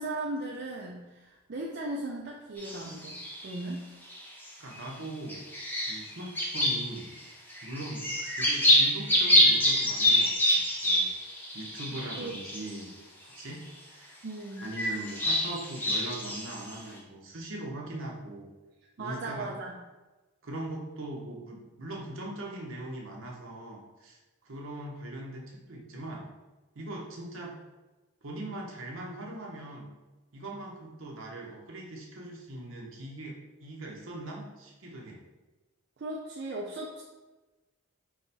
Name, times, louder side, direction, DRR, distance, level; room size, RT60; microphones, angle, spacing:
voice 1, 0.0-3.2 3.4-3.8 11.9-12.4 14.2-14.7 19.0-19.8 36.0-37.0, right 2 dB, 50° right, -2 dB, 0.4 m, -37 dB
sound 1, 2.6-3.6 4.1-4.8 5.3-7.2 7.5-12.8 13.4-13.5 14.6-16.8, left 1 dB, 10° left, 0.5 m, -26 dB
voice 2, 4.6-5.4 5.9-7.1 7.6-8.0 8.3-11.1 11.5-12.9 13.2-14.2 14.6-18.5 19.0-19.5 20.4-24.2 24.4-26.2 26.7-27.6 28.2-29.9 30.3-35.2, right 1 dB, 70° right, -2 dB, 0.9 m, -40 dB
4.7 x 2.2 x 4.2 m, 1.2 s
head